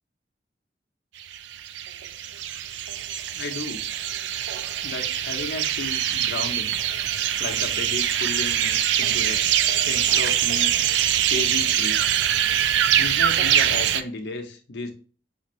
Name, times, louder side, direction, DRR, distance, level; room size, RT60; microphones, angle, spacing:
sound 1, 1.2-14.0, right 10 dB, 75° right, 0.3 m, -23 dB
voice 1, 3.3-3.8 4.8-6.8 7.4-9.5 9.8-10.7 11.3-12.0 13.0-14.9, left 3 dB, 70° left, 4 dB, 0.7 m, -33 dB
5.1 x 2.6 x 3.0 m, 0.39 s
head